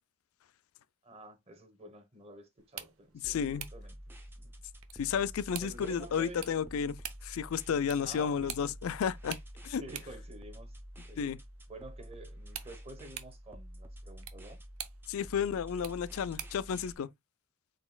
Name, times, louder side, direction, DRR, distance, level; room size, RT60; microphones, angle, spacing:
voice 1, 1.0-4.0 4.4-4.5 5.6-6.4 8.0-8.5 9.8-10.8 11.0-11.3 11.7-14.6, right 2 dB, 30° right, 0.9 m, -49 dB
sound 1, 2.6-16.7, right 11 dB, 85° right, 0.6 m, -49 dB
voice 2, 3.2-3.7 5.0-9.4 9.6-9.8 11.2-11.4 15.1-17.1, left 7 dB, 85° left, 0.4 m, -32 dB
sound 2, 3.2-17.0, equal, 10° right, 0.6 m, -49 dB
4.1 x 4.0 x 2.2 m
head